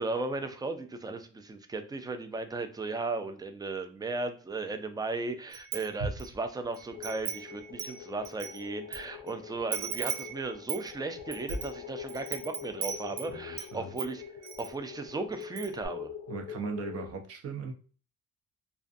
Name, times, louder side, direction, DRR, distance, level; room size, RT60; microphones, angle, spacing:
voice 1, 0.0-14.2 14.6-16.1, right 3 dB, 15° right, 0.3 m, -36 dB
Wind chime, 5.5-6.3 6.7-9.0 9.3-9.4 9.7-13.7 14.0-14.7 15.1-15.2 15.4-15.9, right 7 dB, 90° right, 0.5 m, -37 dB
sound 1, 6.9-17.1, left 9 dB, 50° left, 0.4 m, -44 dB
voice 2, 13.3-13.9 16.3-17.7, right 4 dB, 55° right, 0.7 m, -38 dB
2.5 x 2.2 x 2.5 m
cardioid pair, 90°, 30 cm